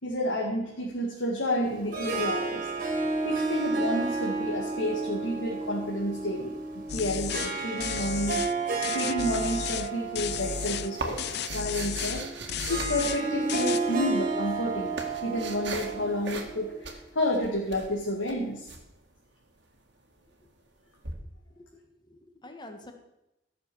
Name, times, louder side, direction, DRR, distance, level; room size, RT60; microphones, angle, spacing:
voice 1, 0.0-2.9 3.2-8.5 8.9-12.2 12.7-14.9 15.2-18.7, left 1 dB, 85° left, -3 dB, 2.3 m, -30 dB
Harp, 1.6-16.9, right 3 dB, 45° right, 2.6 m, -32 dB
sound 1, 6.9-7.5 7.8-8.5 8.8-9.9 10.1-10.9 11.2-12.2 12.5-13.2 13.5-13.8, left 9 dB, 60° left, 0.4 m, -33 dB
sound 2, 9.9-13.7 14.4-16.0 16.2-16.6 16.8-18.8 21.0-21.1, right 3 dB, 65° right, 1.9 m, -39 dB
voice 2, 21.6-22.9, left 1 dB, 25° left, 4 dB, 1.5 m, -48 dB
13.5 x 6.7 x 7.1 m, 0.91 s
head